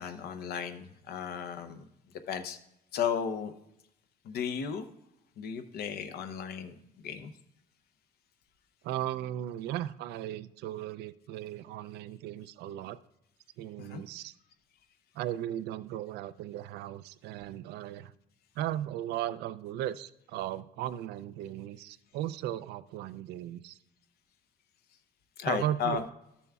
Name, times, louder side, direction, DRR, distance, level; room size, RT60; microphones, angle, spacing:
voice 1, 0.0-1.8 2.3-2.6 2.9-3.5 4.2-4.9 5.4-6.7 7.0-7.3 13.8-14.0 25.4-26.0, left 7 dB, 70° left, 9 dB, 0.8 m, -34 dB
voice 2, 8.8-13.0 13.6-14.3 15.1-18.1 18.6-23.8 25.4-26.0, right 12 dB, 80° right, 16 dB, 0.4 m, -36 dB
12.5 x 7.0 x 2.3 m, 0.81 s
cardioid pair, 110°, 17 cm